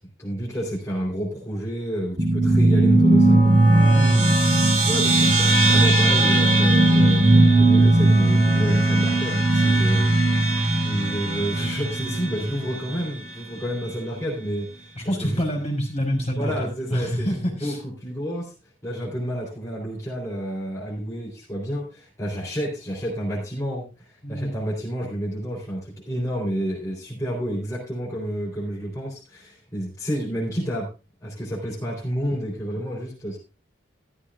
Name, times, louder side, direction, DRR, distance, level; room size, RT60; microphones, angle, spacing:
voice 1, 0.2-3.6 4.9-10.6 10.8-14.9 15.2-15.4 16.4-18.5 18.8-30.9 31.2-33.4, equal, 15° left, -4 dB, 3.9 m, -30 dB
sound 1, 2.2-13.0, right 2 dB, 40° right, 3.0 m, -18 dB
voice 2, 3.7-4.8 15.0-17.8 24.2-24.6, equal, 30° left, 1 dB, 5.3 m, -27 dB
15.0 x 12.5 x 2.5 m, 0.30 s
head